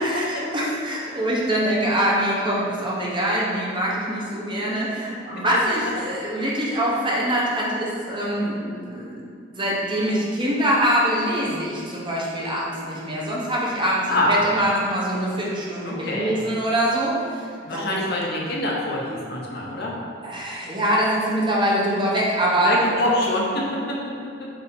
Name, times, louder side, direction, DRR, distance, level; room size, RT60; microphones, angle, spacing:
voice 1, 0.0-9.2 9.5-18.0 20.2-23.1, right 1 dB, 25° right, -5 dB, 1.0 m, -24 dB
voice 2, 14.1-14.4 15.8-16.4 17.7-19.9 22.6-24.5, left 1 dB, 55° left, -3 dB, 0.9 m, -25 dB
7.9 x 2.8 x 4.3 m, 2.4 s
head